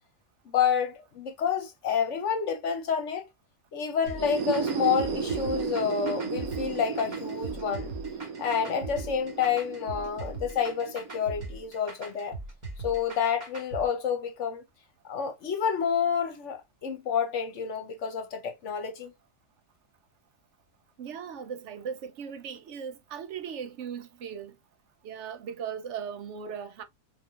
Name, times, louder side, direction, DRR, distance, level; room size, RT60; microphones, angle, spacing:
voice 1, 0.4-3.3 3.7-7.9 8.4-12.4 12.8-14.6 15.0-19.1, left 7 dB, 60° left, 1.1 m, -29 dB
sound 1, 4.0-11.7, right 6 dB, 85° right, 1.2 m, -34 dB
sound 2, 4.1-13.9, right 2 dB, 35° right, 1.5 m, -40 dB
voice 2, 21.0-24.6 25.0-26.8, right 7 dB, 65° right, 0.8 m, -38 dB
4.6 x 3.7 x 2.4 m
omnidirectional pair, 1.5 m